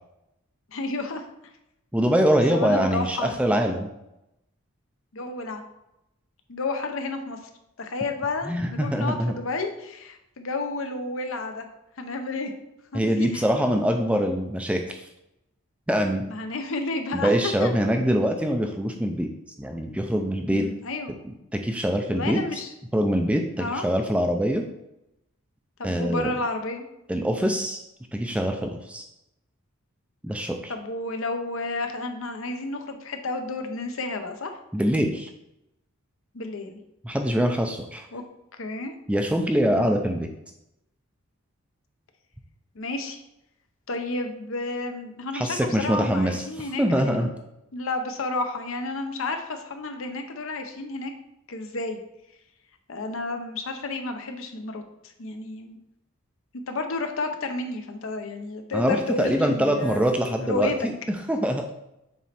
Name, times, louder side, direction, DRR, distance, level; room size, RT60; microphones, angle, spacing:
voice 1, 0.7-1.2 2.5-3.3 5.1-5.6 6.5-7.4 7.8-11.6 12.0-12.5 12.9-13.4 16.3-17.7 20.4-21.1 22.1-22.7 23.6-23.9 25.8-26.9 30.7-34.6 36.3-36.8 38.1-38.2 38.6-38.9 39.7-40.1 42.7-43.2 43.9-47.3 47.7-51.1 51.5-52.0 52.9-54.8 55.2-55.8 56.7-60.8, left 2 dB, 65° left, 6 dB, 0.7 m, -31 dB
voice 2, 1.9-3.9 8.5-9.3 12.9-15.1 15.9-16.2 17.1-19.3 19.6-20.7 21.5-22.6 22.9-24.6 25.8-26.3 27.1-27.8 28.1-29.0 30.2-30.7 34.7-35.3 37.0-38.1 39.1-40.3 45.3-47.3 58.7-61.6, equal, 5° right, 4 dB, 0.3 m, -24 dB
7.0 x 3.1 x 4.2 m, 0.86 s
head